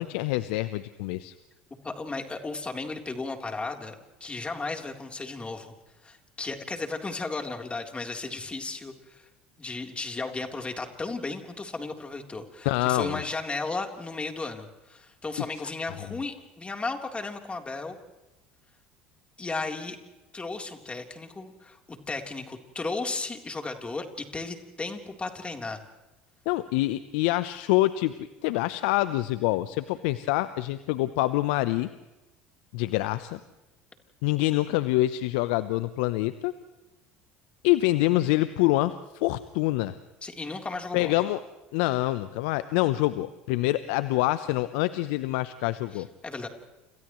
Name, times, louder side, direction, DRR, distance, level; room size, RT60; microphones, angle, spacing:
voice 1, 0.0-1.3 12.6-13.2 26.5-28.2 28.4-31.9 32.7-33.4 34.2-36.5 37.6-39.9 40.9-41.4 41.7-46.1, left 17 dB, 75° left, 13 dB, 0.8 m, -26 dB
voice 2, 1.8-5.7 6.0-9.3 9.6-18.0 19.4-20.0 20.3-25.8 40.2-41.1 45.9-46.5, left 3 dB, 20° left, 3 dB, 3.6 m, -35 dB
29.5 x 28.5 x 3.2 m, 1.0 s
hypercardioid pair, 75°, 6 cm